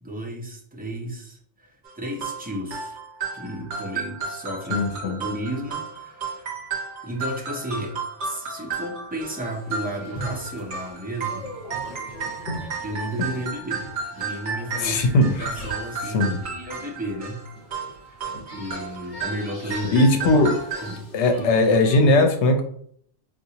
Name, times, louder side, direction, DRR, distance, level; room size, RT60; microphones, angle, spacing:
voice 1, 0.0-3.0 3.3-6.6 7.0-11.5 12.8-15.1 15.4-17.4 18.5-20.5 20.7-21.1, right 1 dB, 15° right, 0 dB, 0.4 m, -33 dB
sound 1, 1.8-20.9, right 5 dB, 50° right, 0.8 m, -33 dB
voice 2, 4.7-5.2 14.8-15.4 16.0-16.4 19.9-20.5 21.1-22.6, left 2 dB, 90° left, 5 dB, 0.9 m, -19 dB
sound 2, 9.4-22.0, equal, 45° left, 1.2 m, -41 dB
3.8 x 2.4 x 2.8 m, 0.62 s
omnidirectional pair, 1.2 m